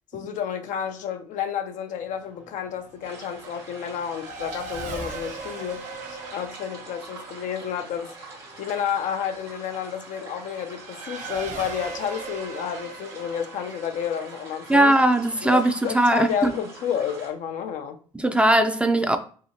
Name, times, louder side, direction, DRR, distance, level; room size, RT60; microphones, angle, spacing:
voice 1, 0.1-14.9 15.4-18.0, left 8 dB, 65° left, 0.5 m, -31 dB
Race car auto racing / Accelerating revving vroom, 2.0-16.1, right 3 dB, 65° right, 0.7 m, -40 dB
sound 1, 3.0-17.3, right 3 dB, 90° right, 1.0 m, -44 dB
voice 2, 14.7-16.5 18.1-19.2, right 1 dB, 10° right, 0.4 m, -19 dB
2.8 x 2.7 x 2.8 m
hypercardioid pair, 50°, 14 cm